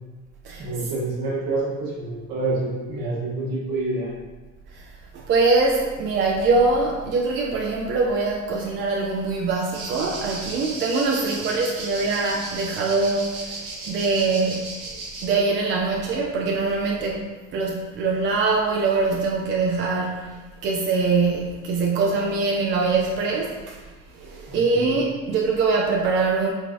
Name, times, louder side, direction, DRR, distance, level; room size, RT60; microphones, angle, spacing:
voice 1, 0.6-4.1 24.5-24.9, right 2 dB, 50° right, -6 dB, 1.5 m, -27 dB
voice 2, 5.1-13.5 13.9-14.7 15.2-23.8 24.1-26.5, right 3 dB, 30° right, -1 dB, 0.4 m, -23 dB
sound 1, 9.7-15.3, right 3 dB, 75° right, 1.0 m, -35 dB
3.9 x 3.2 x 2.5 m, 1.3 s
figure-of-eight pair, 65°, 43 cm